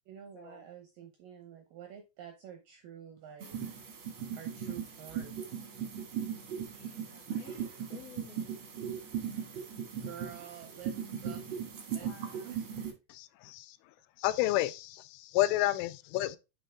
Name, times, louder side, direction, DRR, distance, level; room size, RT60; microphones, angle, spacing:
voice 1, 0.1-3.5 4.3-5.4 7.5-7.6 10.0-11.4 11.9-12.1 12.4-12.9, right 9 dB, 80° right, 2.0 m, -49 dB
sound 1, 3.4-12.9, right 8 dB, 65° right, 1.3 m, -38 dB
voice 2, 6.7-8.6 8.9-9.0 12.0-12.5, left 7 dB, 65° left, 2.7 m, -54 dB
voice 3, 13.4-13.8 14.2-16.4, left 16 dB, 90° left, 3.1 m, -30 dB
9.2 x 4.4 x 3.5 m
omnidirectional pair, 5.4 m